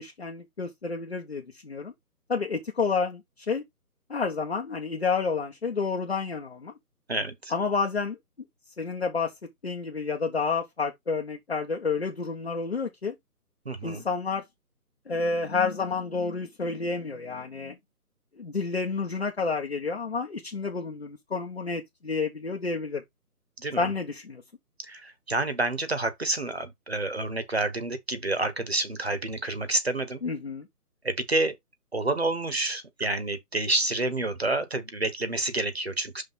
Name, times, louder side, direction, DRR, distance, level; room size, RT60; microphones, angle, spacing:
voice 1, 0.0-1.9 2.3-3.2 3.5-3.6 4.1-6.7 7.5-8.2 8.8-9.3 9.6-13.1 13.8-14.4 15.1-17.8 18.4-23.0 23.8-24.4 30.2-30.7, left 4 dB, 40° left, 1.1 m, -29 dB
voice 2, 7.1-7.5 13.6-14.0 23.6-23.9 24.8-30.2 31.0-31.5 31.9-36.2, right 2 dB, 40° right, 1.0 m, -29 dB
5.8 x 3.5 x 5.4 m
hypercardioid pair, 180°, 46 cm